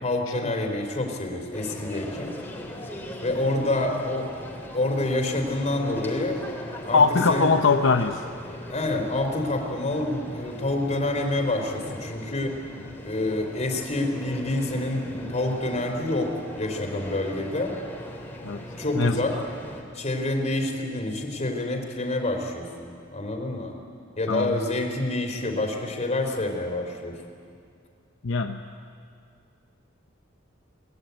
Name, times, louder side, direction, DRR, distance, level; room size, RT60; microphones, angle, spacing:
voice 1, 0.0-2.3 3.2-4.3 4.7-6.4 6.8-7.0 7.3-7.5 8.7-12.6 13.0-17.7 18.8-19.4 19.9-23.8 24.2-27.2, left 2 dB, 35° left, 3 dB, 3.4 m, -27 dB
sound 1, 1.5-19.8, equal, 10° left, 3.1 m, -39 dB
voice 2, 6.9-8.2 18.4-18.6 19.0-19.2 24.3-24.6 28.2-28.6, left 4 dB, 65° left, 5 dB, 0.8 m, -21 dB
24.0 x 19.5 x 9.3 m, 2.3 s
head